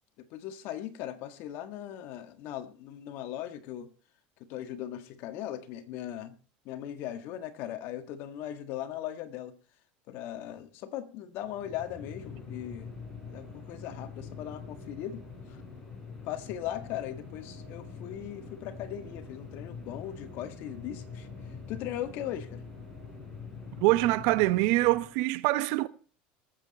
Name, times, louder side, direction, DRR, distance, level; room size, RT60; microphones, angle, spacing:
voice 1, 0.2-3.9 4.4-6.4 6.7-9.6 10.1-13.0 13.3-15.6 16.2-21.3 21.7-22.7, left 11 dB, 55° left, 1.8 m, -39 dB
sound 1, 11.4-25.3, left 5 dB, 15° left, 6.5 m, -44 dB
voice 2, 23.8-25.9, right 19 dB, 70° right, 0.9 m, -24 dB
20.0 x 8.0 x 4.2 m
supercardioid pair, 140°, 4 cm